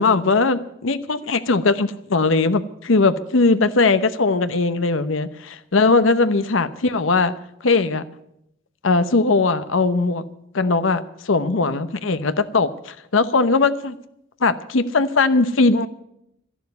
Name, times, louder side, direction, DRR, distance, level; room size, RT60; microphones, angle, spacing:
voice 1, 0.0-7.3 7.6-8.0 8.8-10.2 10.5-13.9 14.4-15.9, left 3 dB, 80° left, 12 dB, 0.9 m, -19 dB
13.5 x 11.0 x 9.6 m, 0.77 s
head